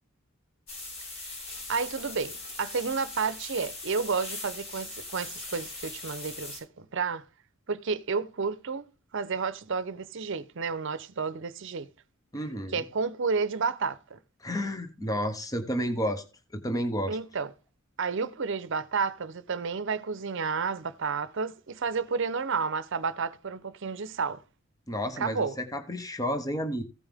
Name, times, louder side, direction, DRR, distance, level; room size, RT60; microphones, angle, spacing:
sound 1, 0.7-6.6, left 2 dB, 80° left, 5.8 m, -40 dB
voice 1, 1.7-7.2 7.7-8.8 9.1-11.9 12.7-14.2 17.1-17.5 18.0-24.4 25.2-25.6, right 5 dB, 60° right, 0.7 m, -31 dB
voice 2, 12.3-12.8 14.4-16.2 16.5-17.2 24.9-26.8, equal, 15° left, 0.9 m, -31 dB
15.5 x 5.4 x 3.5 m
head